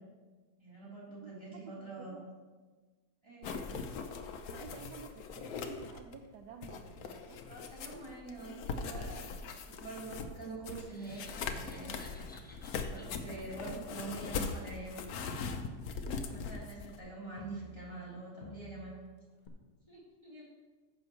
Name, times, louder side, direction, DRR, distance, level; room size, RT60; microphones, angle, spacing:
voice 1, 0.6-2.2 3.2-3.7 7.5-9.2 9.6-12.3 12.9-15.0 16.1-19.0 19.9-20.4, right 3 dB, 15° right, -8 dB, 3.4 m, -45 dB
voice 2, 1.2-2.2 4.5-7.5, right 6 dB, 75° right, 4 dB, 1.1 m, -51 dB
sound 1, 3.4-6.3 6.6-17.0, left 5 dB, 65° left, 1.1 m, -41 dB
sound 2, 10.8-15.0, left 1 dB, 10° left, 0.4 m, -58 dB
Crowd, 11.1-12.9 13.2-18.1 18.4-19.1 19.5-19.6, equal, 30° left, 1.0 m, -55 dB
14.5 x 6.3 x 3.1 m, 1.3 s
omnidirectional pair, 1.8 m